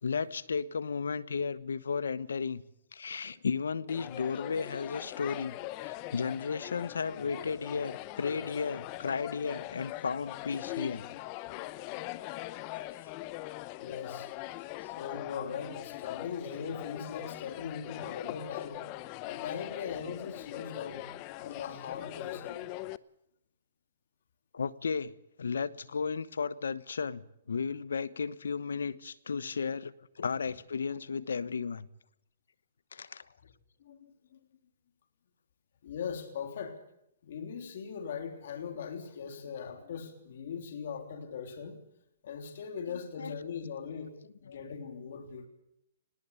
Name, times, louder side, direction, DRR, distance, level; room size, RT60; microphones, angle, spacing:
voice 1, 0.0-2.6 2.9-5.6 5.8-11.1 24.5-25.1 25.4-27.2 27.5-31.9 32.9-33.2 43.2-43.4 44.5-44.6, left 5 dB, 90° left, 1.1 m, -34 dB
sound 1, 3.9-23.0, left 17 dB, 35° left, 0.8 m, -42 dB
voice 2, 13.8-14.3 15.0-18.9 19.2-21.1 21.4-22.7 33.4-33.5 33.8-34.4 35.8-36.8 37.2-41.8 42.2-45.5, left 6 dB, 65° left, 3.2 m, -40 dB
20.5 x 18.5 x 8.4 m
hypercardioid pair, 140°, 0 cm